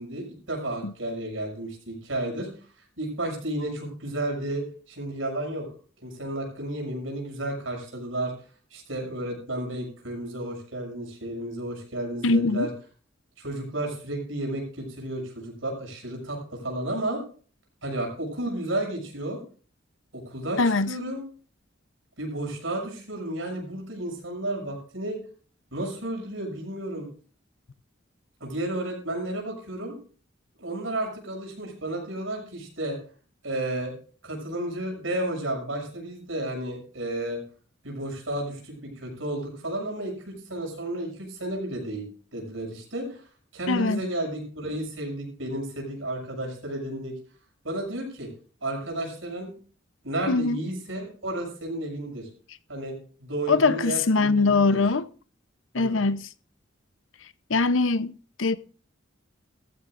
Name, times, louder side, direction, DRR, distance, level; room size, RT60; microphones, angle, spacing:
voice 1, 0.0-2.5 3.0-5.7 6.0-8.3 8.7-12.7 13.4-17.2 17.8-19.4 20.1-21.2 22.2-25.2 25.7-27.1 28.4-29.9 30.6-33.0 33.4-33.9 34.2-37.4 37.8-47.1 47.6-48.3 48.6-49.5 50.0-52.3 52.7-53.0 53.2-54.8 55.7-56.0, right 1 dB, 85° right, 6.9 m, -32 dB
voice 2, 12.2-12.7 20.6-20.9 43.7-44.1 50.3-50.6 53.5-55.1 55.7-56.3 57.5-58.6, left 3 dB, 75° left, 0.8 m, -22 dB
16.0 x 14.5 x 2.6 m
head